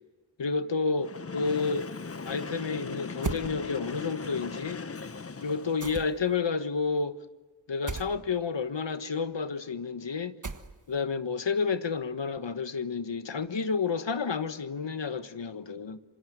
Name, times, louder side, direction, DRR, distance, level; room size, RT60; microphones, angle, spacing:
voice 1, 0.4-1.9 2.3-4.8 5.4-7.2 7.7-10.3 10.9-16.0, left 5 dB, 70° left, 1.3 m, -30 dB
Train, 1.0-6.0, left 4 dB, 30° left, 0.8 m, -39 dB
sound 1, 3.2-3.5 5.8-6.3 7.9-8.1 10.4-11.0, right 4 dB, 40° right, 1.4 m, -35 dB
27.0 x 25.5 x 8.0 m
wide cardioid pair, 60°, 46 cm